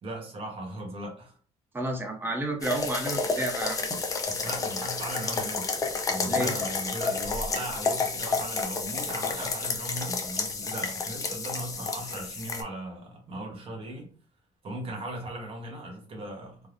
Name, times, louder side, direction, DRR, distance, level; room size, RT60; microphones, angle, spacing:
voice 1, 0.0-1.4 4.3-5.7 6.1-14.1 14.6-16.6, right 1 dB, 45° right, 1.1 m, -38 dB
voice 2, 1.7-3.8 6.2-6.5, right 1 dB, 15° right, 0.6 m, -31 dB
sound 1, 2.6-12.6, left 4 dB, 25° left, 0.4 m, -30 dB
3.5 x 2.1 x 2.5 m
cardioid pair, 155°, 14 cm